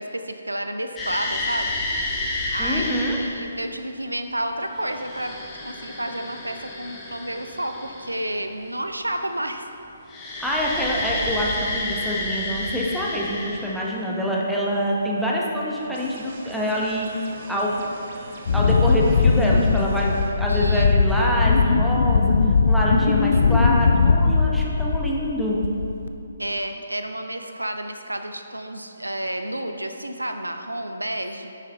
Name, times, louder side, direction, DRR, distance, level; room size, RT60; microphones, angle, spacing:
voice 1, 0.0-1.7 2.5-5.4 5.6-9.7 20.5-20.9 23.2-23.5 26.4-31.5, right 1 dB, 80° right, 6 dB, 0.5 m, -30 dB
sound 1, 1.0-3.4 4.6-8.4 10.1-14.0 17.0-17.1 18.3-18.7, left 2 dB, 15° left, 1.2 m, -30 dB
voice 2, 2.6-3.2 10.4-17.9 18.5-22.3 22.7-25.6, equal, ahead, -5 dB, 0.9 m, -25 dB
sound 2, 15.9-20.3, right 2 dB, 40° right, 1.0 m, -42 dB
Wind, 18.5-25.3 25.6-26.1, left 4 dB, 50° left, 0.4 m, -19 dB
9.6 x 6.3 x 3.3 m, 2.7 s
figure-of-eight pair, 135°, 0 cm